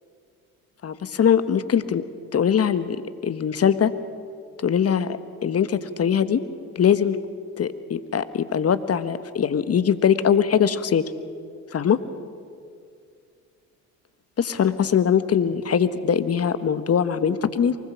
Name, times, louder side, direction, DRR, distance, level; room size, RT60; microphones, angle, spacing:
voice 1, 0.8-2.0 2.3-3.0 3.2-3.9 4.6-5.1 5.4-6.4 6.7-7.2 7.6-11.0 11.7-12.0 14.4-17.8, left 8 dB, 35° left, 13 dB, 1.3 m, -21 dB
24.0 x 20.5 x 7.2 m, 2.2 s
hypercardioid pair, 60°, 43 cm